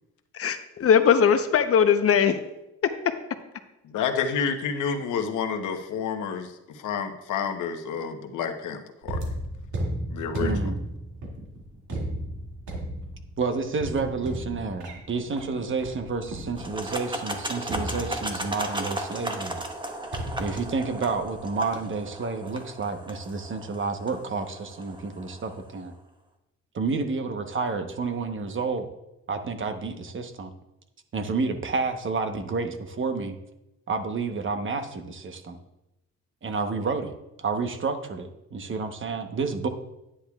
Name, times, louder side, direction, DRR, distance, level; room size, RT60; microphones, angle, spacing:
voice 1, 0.4-2.4, left 7 dB, 50° left, 9 dB, 0.8 m, -20 dB
voice 2, 3.8-9.2 10.1-10.5, left 6 dB, 80° left, 5 dB, 1.0 m, -29 dB
sound 1, 9.0-17.0 17.7-18.7 20.1-21.4 21.7-22.1, equal, 70° right, 2.3 m, -34 dB
voice 3, 10.4-10.8 13.4-19.6 20.4-25.9 26.7-28.9 29.3-30.5 31.1-33.4 33.9-35.6 36.4-39.7, right 4 dB, 40° right, 7 dB, 1.0 m, -30 dB
sound 2, 16.6-25.6, right 1 dB, 15° right, 1.2 m, -36 dB
10.0 x 9.9 x 2.4 m, 0.92 s
cardioid pair, 90°, 30 cm